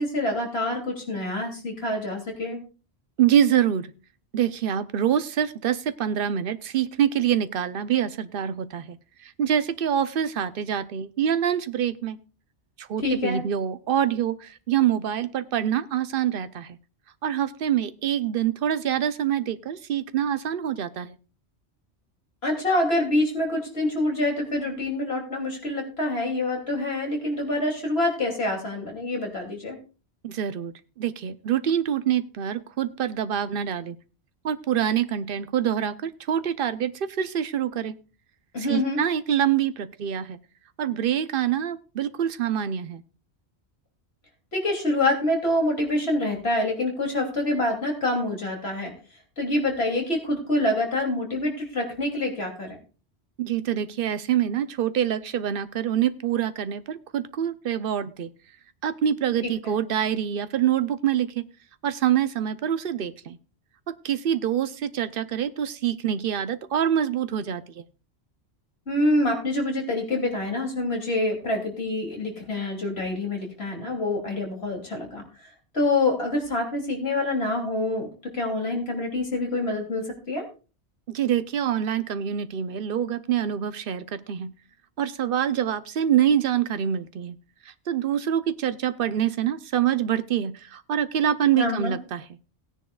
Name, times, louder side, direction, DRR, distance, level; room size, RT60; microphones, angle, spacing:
voice 1, 0.0-2.6 13.0-13.4 22.4-29.8 38.5-39.0 44.5-48.9 49.4-52.8 59.4-59.5 68.9-75.2 75.7-80.5 91.6-91.9, left 1 dB, 70° left, 1 dB, 3.2 m, -26 dB
voice 2, 3.2-3.9 4.3-9.0 9.4-12.2 12.8-16.7 17.2-21.1 30.2-34.0 34.4-38.0 38.7-40.4 40.8-43.0 53.4-58.3 58.8-61.5 61.8-63.4 63.9-67.8 81.1-84.5 85.0-87.3 87.9-92.2, right 9 dB, 60° right, 13 dB, 0.8 m, -25 dB
17.5 x 9.9 x 2.3 m, 0.35 s
omnidirectional pair, 1.1 m